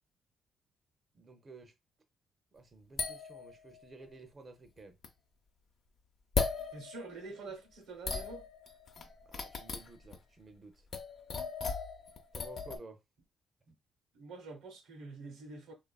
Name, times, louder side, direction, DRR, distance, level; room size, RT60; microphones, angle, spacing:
voice 1, 1.1-1.7 2.5-5.0 9.2-10.9 12.3-13.0, right 3 dB, 35° right, 0.5 m, -53 dB
sound 1, 3.0-4.1 5.0-5.1 6.3-7.5 8.1-10.2 10.9-12.8, left 5 dB, 55° left, 0.5 m, -37 dB
voice 2, 6.7-8.5 9.0-9.1 13.7-13.8 14.1-15.7, right 3 dB, 90° right, 0.8 m, -47 dB
2.9 x 2.3 x 2.2 m
cardioid pair, 90°, 0 cm